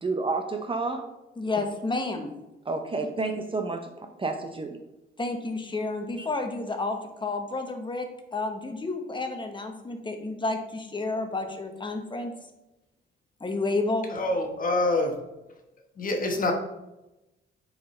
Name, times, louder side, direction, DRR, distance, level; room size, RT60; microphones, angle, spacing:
voice 1, 0.0-1.1 1.6-1.7 2.7-4.8 6.2-6.3, right 3 dB, 25° right, 5 dB, 0.8 m, -30 dB
voice 2, 1.4-2.3 5.2-12.3 13.4-14.1, left 3 dB, 25° left, 5 dB, 1.1 m, -30 dB
voice 3, 14.1-15.2 16.0-16.5, left 2 dB, 45° left, 3 dB, 1.2 m, -26 dB
8.9 x 4.8 x 3.3 m, 0.97 s
cardioid pair, 90°, 20 cm